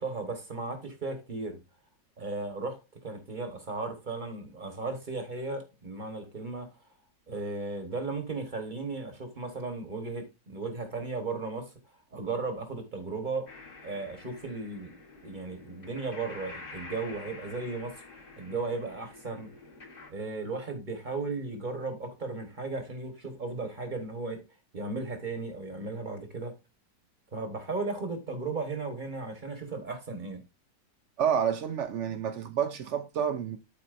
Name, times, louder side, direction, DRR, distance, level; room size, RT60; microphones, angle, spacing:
voice 1, 0.0-1.6 2.2-6.9 7.3-11.7 12.1-13.5 13.8-14.9 15.2-17.9 18.4-19.5 20.1-24.4 24.7-26.5 27.3-30.4, right 3 dB, 30° right, 1.1 m, -35 dB
sound 1, 13.5-20.1, left 3 dB, 35° left, 1.1 m, -48 dB
voice 2, 31.2-33.6, right 8 dB, 65° right, 0.7 m, -29 dB
12.5 x 4.3 x 2.5 m
omnidirectional pair, 1.9 m